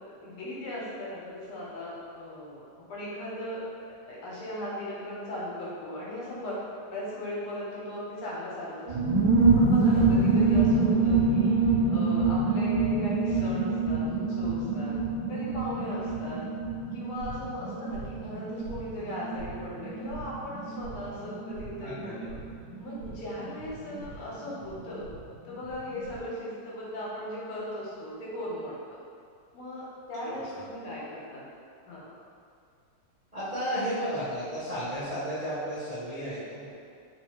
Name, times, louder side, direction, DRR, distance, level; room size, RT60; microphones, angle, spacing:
voice 1, 0.1-2.6 2.9-3.6 3.9-6.5 6.9-9.1 9.5-11.5 11.9-15.0 15.3-16.4 16.9-22.4 22.8-25.1 25.4-29.0 29.5-31.5 31.9-32.1, left 1 dB, 75° left, -6 dB, 1.9 m, -38 dB
sound 1, 8.9-25.2 25.4-25.5 25.7-26.2, right 3 dB, 70° right, 1.6 m, -26 dB
voice 2, 21.8-22.3 23.0-23.1 30.2-30.4 33.3-36.7, equal, 30° right, -14 dB, 0.7 m, -33 dB
3.8 x 2.7 x 4.5 m, 2.3 s
omnidirectional pair, 2.4 m